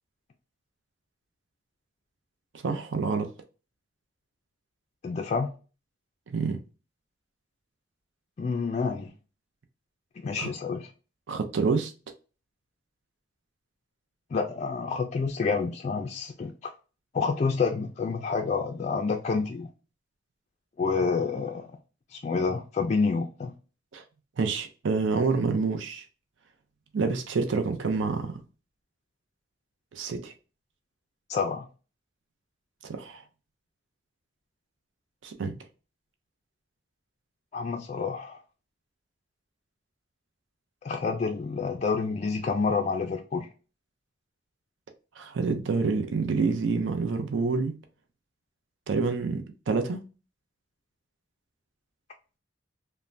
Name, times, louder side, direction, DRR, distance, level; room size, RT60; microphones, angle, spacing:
voice 1, 2.6-3.3 6.3-6.6 10.4-10.5 11.3-11.9 23.9-24.0 24.4-26.0 26.9-28.4 29.9-30.3 32.8-33.2 35.2-35.6 45.2-47.8 48.9-50.0, right 4 dB, 80° right, 0.5 m, -27 dB
voice 2, 5.0-5.5 8.4-9.1 10.2-10.9 14.3-16.7 17.1-19.7 20.8-21.7 22.1-23.5 31.3-31.7 37.5-38.4 40.8-43.5, left 4 dB, 35° left, 0.3 m, -28 dB
3.2 x 2.1 x 2.5 m
head